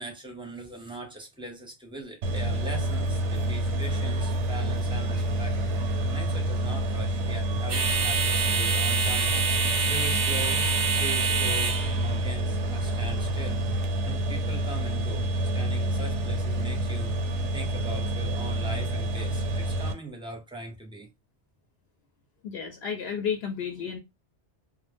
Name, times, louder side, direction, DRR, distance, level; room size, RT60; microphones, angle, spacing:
voice 1, 0.0-5.6 6.0-9.3 9.9-10.7 10.9-13.6 14.0-21.1, right 2 dB, 5° right, 0.5 m, -40 dB
sound 1, 2.2-19.9, right 1 dB, 90° right, 0.9 m, -28 dB
sound 2, 2.5-13.9, right 5 dB, 60° right, 0.4 m, -30 dB
voice 2, 22.4-24.0, left 7 dB, 70° left, 0.8 m, -32 dB
2.1 x 2.0 x 3.3 m
omnidirectional pair, 1.2 m